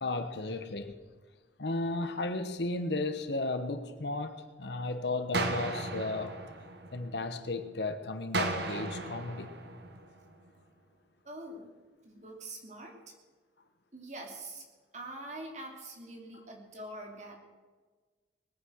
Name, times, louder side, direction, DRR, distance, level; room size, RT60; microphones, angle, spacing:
voice 1, 0.0-0.9 1.6-6.4 6.9-9.6, left 2 dB, 70° left, 1.2 m, -34 dB
sound 1, 5.3-7.4 8.3-10.4, right 2 dB, 65° right, 1.7 m, -35 dB
voice 2, 11.2-11.7 12.0-13.1 13.9-14.6 14.9-17.4, right 1 dB, 40° right, 2.9 m, -44 dB
20.0 x 9.6 x 6.4 m
head